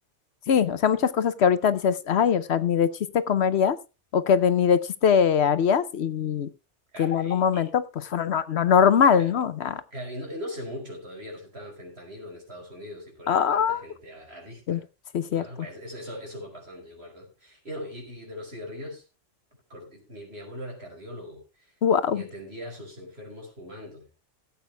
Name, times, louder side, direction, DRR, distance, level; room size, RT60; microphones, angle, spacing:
voice 1, 0.5-3.8 4.1-6.5 7.0-7.8 8.1-9.8 13.3-13.8 14.7-14.8 15.1-15.4 21.8-22.2, left 7 dB, 70° left, 13 dB, 1.0 m, -22 dB
voice 2, 6.9-7.7 9.2-9.3 9.9-14.8 15.3-19.0 19.7-21.7 22.1-24.1, equal, 60° right, 0 dB, 5.5 m, -40 dB
16.5 x 8.3 x 3.4 m, 0.30 s
omnidirectional pair, 1.2 m